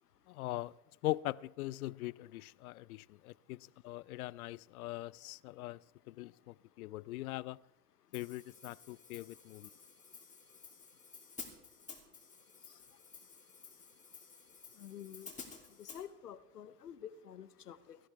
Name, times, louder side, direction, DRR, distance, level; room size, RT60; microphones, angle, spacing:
voice 1, 0.3-0.7 1.0-5.8 6.1-7.6 8.1-9.7, left 17 dB, 70° left, 0.5 m, -41 dB
Hi-hat, 8.1-16.0, left 5 dB, 15° left, 2.9 m, -53 dB
voice 2, 14.8-15.3 15.8-18.0, left 9 dB, 90° left, 0.9 m, -49 dB
17.0 x 14.0 x 3.4 m
hypercardioid pair, 90°, 46 cm